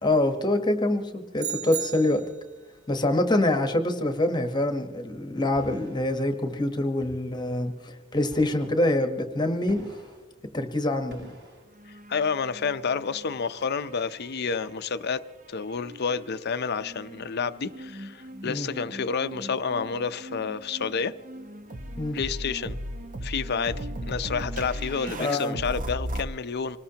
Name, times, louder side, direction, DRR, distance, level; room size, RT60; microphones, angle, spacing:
voice 1, 0.0-2.2 2.9-9.8 10.5-11.2 18.4-18.7 22.0-22.2 25.2-25.6, left 1 dB, 20° left, 1.1 m, -25 dB
sound 1, 1.4-2.5, right 10 dB, 85° right, 0.8 m, -34 dB
sound 2, 5.5-6.1 7.0-7.4 8.3-8.8 9.7-10.2 11.1-11.6, left 1 dB, 60° right, 6.1 m, -46 dB
sound 3, 11.8-13.3 13.7-15.0 15.8-26.2, right 1 dB, 40° right, 0.8 m, -38 dB
voice 2, 12.1-15.2 15.5-21.1 22.1-22.8 23.2-26.8, left 5 dB, 50° left, 0.6 m, -29 dB
25.5 x 19.5 x 2.9 m
head